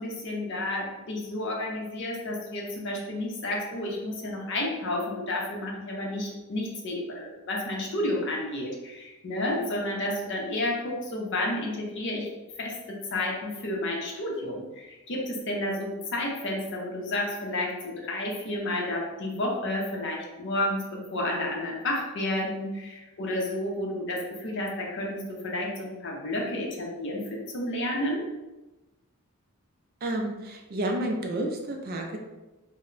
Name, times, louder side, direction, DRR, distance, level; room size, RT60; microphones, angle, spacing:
voice 1, 0.0-12.3 12.6-28.2, left 1 dB, 55° left, -1 dB, 0.6 m, -31 dB
voice 2, 30.0-32.2, right 1 dB, 40° right, 1 dB, 0.3 m, -30 dB
2.1 x 2.0 x 3.7 m, 1.1 s
head